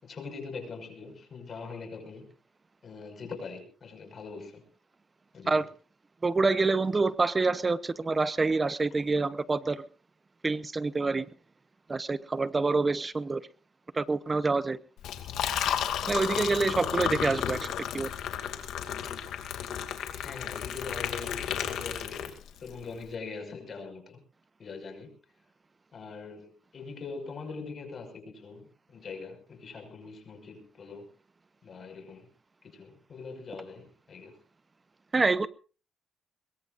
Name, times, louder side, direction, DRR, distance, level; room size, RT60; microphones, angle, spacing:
voice 1, 0.0-2.3 2.8-4.7 5.3-5.7 17.2-17.5 20.2-22.3 22.6-24.2 24.6-25.1 25.9-31.0 31.6-32.3 32.6-34.4, left 4 dB, 50° left, 5.9 m, -42 dB
voice 2, 6.2-9.8 10.4-11.3 11.9-13.4 13.9-14.8 16.0-17.7 17.9-18.1 35.1-35.5, right 3 dB, 25° right, 0.9 m, -27 dB
Liquid, 15.0-22.7, left 9 dB, 80° left, 2.4 m, -33 dB
22.5 x 22.5 x 2.6 m
cardioid pair, 90°, 0 cm